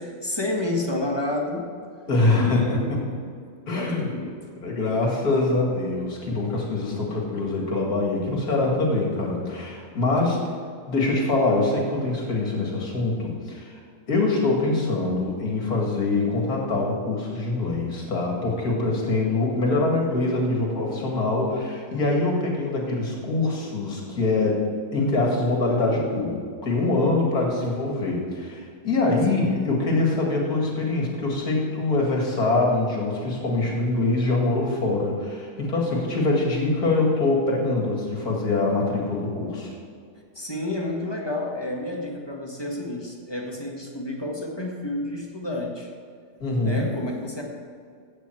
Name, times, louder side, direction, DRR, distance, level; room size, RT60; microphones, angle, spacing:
voice 1, 0.0-1.7 2.3-3.2 3.7-4.4 29.3-29.5 40.3-45.9 46.6-47.4, left 2 dB, 15° left, -1 dB, 1.5 m, -30 dB
voice 2, 2.1-3.0 3.7-4.1 4.6-10.5 10.9-13.7 14.1-24.6 24.9-39.7 46.4-46.9, left 2 dB, 65° left, -1 dB, 2.6 m, -24 dB
15.5 x 8.4 x 4.6 m, 2.2 s
omnidirectional pair, 1.7 m